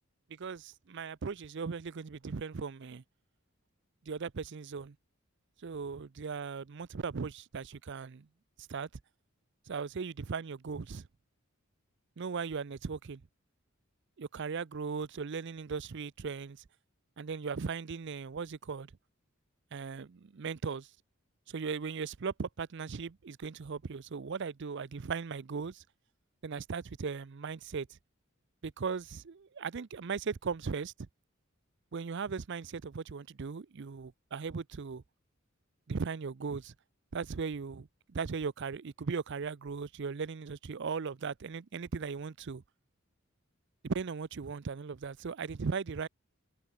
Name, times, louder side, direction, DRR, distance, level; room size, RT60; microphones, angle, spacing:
voice 1, 0.4-3.0 4.1-4.9 5.6-8.3 8.7-8.9 9.7-11.0 12.2-13.2 14.2-16.6 17.2-18.9 19.7-20.9 21.5-25.8 26.4-27.9 28.6-30.9 31.9-35.0 35.9-36.7 37.1-42.6 43.8-46.1, right 5 dB, 60° right, 0.5 m, -38 dB
head